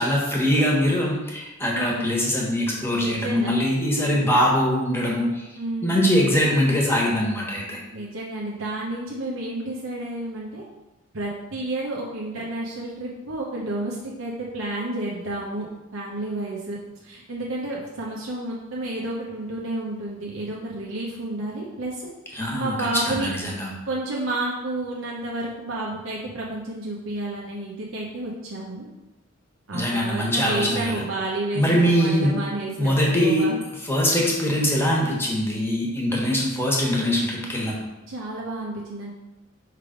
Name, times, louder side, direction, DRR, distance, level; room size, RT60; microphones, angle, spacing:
voice 1, 0.0-5.5 5.8-7.8 22.3-22.7 23.1-23.7 29.7-31.0 31.5-32.4 32.8-33.4 33.9-37.7, equal, 10° left, -3 dB, 1.3 m, -22 dB
voice 2, 1.7-2.1 2.9-3.5 5.6-6.1 7.9-10.6 11.1-16.8 17.0-23.3 23.9-28.9 29.7-33.6 38.1-39.1, right 2 dB, 75° right, -4 dB, 0.9 m, -31 dB
5.7 x 3.4 x 5.1 m, 1.0 s
head